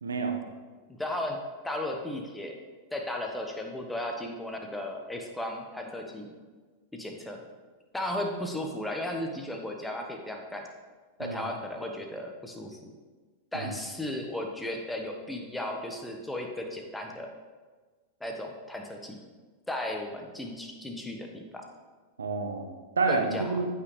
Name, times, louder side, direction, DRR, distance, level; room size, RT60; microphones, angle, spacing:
voice 1, 0.0-0.3 11.2-11.4 13.5-13.7 22.2-23.7, right 4 dB, 70° right, 4 dB, 1.1 m, -29 dB
voice 2, 0.9-1.4 1.6-2.6 2.9-6.3 6.9-7.4 7.9-10.7 11.2-12.9 13.5-17.3 18.2-19.2 19.7-21.6 23.1-23.6, left 1 dB, 5° left, 2 dB, 1.2 m, -35 dB
14.5 x 5.8 x 3.3 m, 1.4 s
figure-of-eight pair, 90°, 0 cm